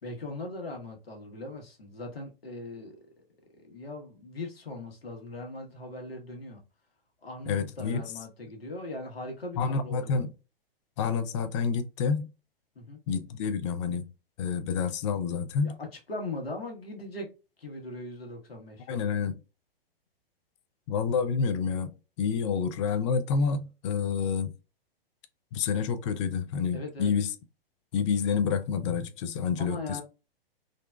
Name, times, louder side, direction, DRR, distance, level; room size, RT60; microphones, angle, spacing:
voice 1, 0.0-3.0 3.6-6.6 7.2-10.2 12.7-13.0 15.6-17.3 17.6-18.9 26.7-27.1 29.6-30.0, left 2 dB, 80° left, 1.2 m, -39 dB
voice 2, 7.5-8.0 9.6-10.3 11.0-12.3 13.1-14.1 14.4-15.7 18.9-19.4 20.9-24.5 25.5-27.3 27.9-30.0, left 6 dB, 30° left, 0.4 m, -28 dB
3.8 x 2.1 x 2.3 m
figure-of-eight pair, 110°, 30 cm